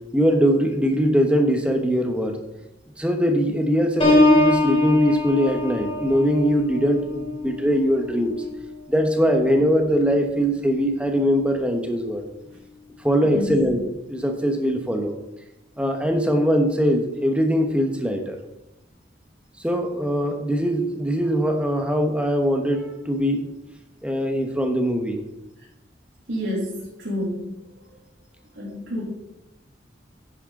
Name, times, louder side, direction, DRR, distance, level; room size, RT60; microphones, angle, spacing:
voice 1, 0.1-2.4 3.0-8.3 8.9-12.2 13.0-13.8 14.1-15.2 15.8-18.4 19.6-23.5 24.0-25.2, equal, 5° right, 4 dB, 1.1 m, -21 dB
Piano, 4.0-9.6 10.1-10.4, left 2 dB, 30° left, 3.7 m, -23 dB
voice 2, 13.2-13.7 26.3-27.5 28.5-29.0, left 1 dB, 85° right, -5 dB, 2.9 m, -29 dB
9.9 x 9.9 x 3.8 m, 0.92 s
head